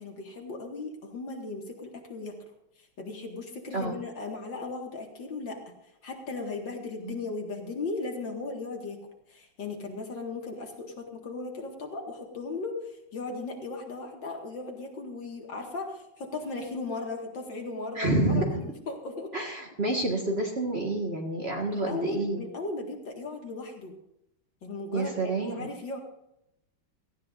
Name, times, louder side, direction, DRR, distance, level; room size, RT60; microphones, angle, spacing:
voice 1, 0.0-2.4 3.0-5.6 6.0-9.0 9.3-19.3 21.6-23.9 24.6-26.0, left 3 dB, 60° left, 2 dB, 2.6 m, -37 dB
voice 2, 18.0-18.6 19.3-22.4 24.9-25.7, right 2 dB, 30° right, 0 dB, 1.8 m, -28 dB
17.5 x 15.0 x 2.6 m, 0.83 s
omnidirectional pair, 2.3 m